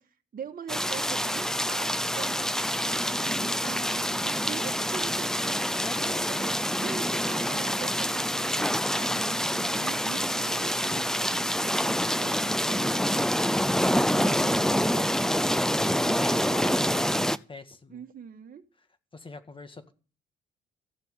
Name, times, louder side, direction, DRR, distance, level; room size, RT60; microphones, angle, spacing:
voice 1, 0.0-5.8 6.3-13.0 14.1-15.2 16.0-17.2 17.9-18.6, right 7 dB, 45° right, 1.8 m, -43 dB
sound 1, 0.7-17.4, equal, 5° left, 0.6 m, -26 dB
voice 2, 5.8-6.3 16.2-16.7 17.5-18.0 19.1-19.9, left 3 dB, 25° left, 1.9 m, -43 dB
15.0 x 6.9 x 9.1 m
cardioid pair, 90°, 20 cm